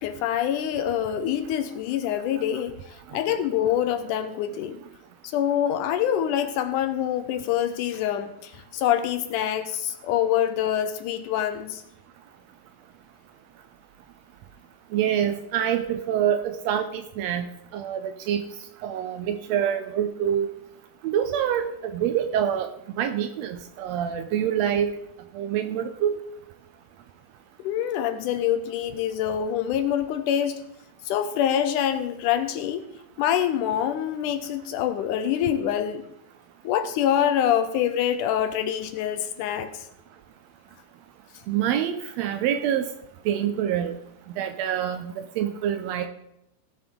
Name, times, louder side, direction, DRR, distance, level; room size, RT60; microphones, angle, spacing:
voice 1, 0.0-4.8 5.2-11.8 27.6-30.6 31.1-32.9 33.2-36.0 36.6-39.9, left 10 dB, 80° left, 10 dB, 2.1 m, -25 dB
voice 2, 14.9-18.4 18.8-20.5 21.0-22.7 23.0-24.9 25.3-26.2 41.5-42.9 43.2-44.0 44.4-46.1, right 9 dB, 90° right, 8 dB, 1.5 m, -26 dB
17.5 x 7.5 x 3.8 m, 0.80 s
omnidirectional pair, 3.8 m